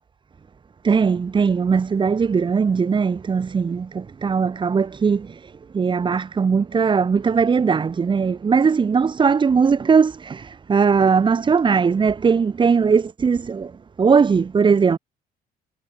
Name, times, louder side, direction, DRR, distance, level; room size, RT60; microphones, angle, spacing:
voice 1, 0.8-5.4 5.7-13.7 14.0-15.0, right 5 dB, 25° right, 3.7 m, -19 dB
cardioid pair, 155°, 18 cm